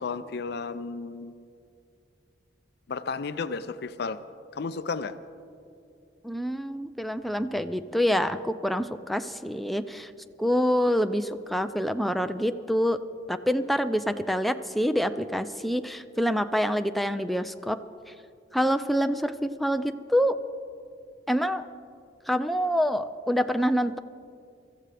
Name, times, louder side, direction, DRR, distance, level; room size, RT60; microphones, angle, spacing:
voice 1, 0.0-1.3 2.9-4.2 4.5-5.1, left 4 dB, 65° left, 12 dB, 0.5 m, -33 dB
voice 2, 6.2-10.1 10.4-13.0 13.3-17.8 18.5-20.4 21.3-21.7 22.3-24.0, equal, ahead, 8 dB, 0.4 m, -26 dB
24.5 x 14.0 x 3.4 m, 2.4 s
head